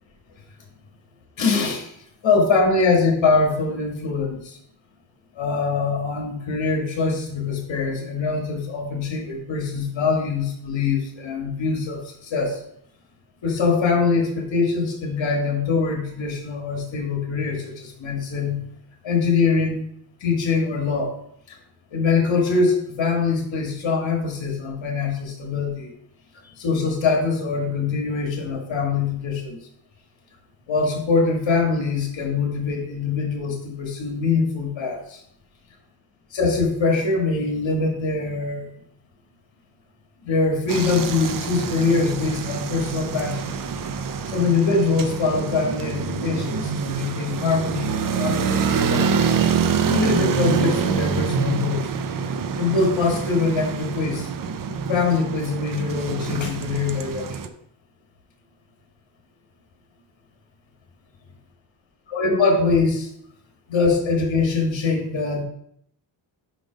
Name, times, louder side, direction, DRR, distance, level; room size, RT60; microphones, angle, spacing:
voice 1, 1.4-1.9 2.2-4.6 5.4-12.6 13.4-18.6 19.0-19.8 20.2-21.1 21.5-21.6 21.9-25.9 26.6-29.6 30.7-35.2 36.3-38.7 40.2-43.5 44.3-49.1 49.9-51.9 52.6-54.3 54.9-57.5 62.1-63.1 63.7-65.4, left 4 dB, 65° left, 2 dB, 1.8 m, -23 dB
sound 1, 40.7-57.5, right 6 dB, 45° right, 0.5 m, -26 dB
5.6 x 5.3 x 5.1 m, 0.71 s
wide cardioid pair, 155°, 48 cm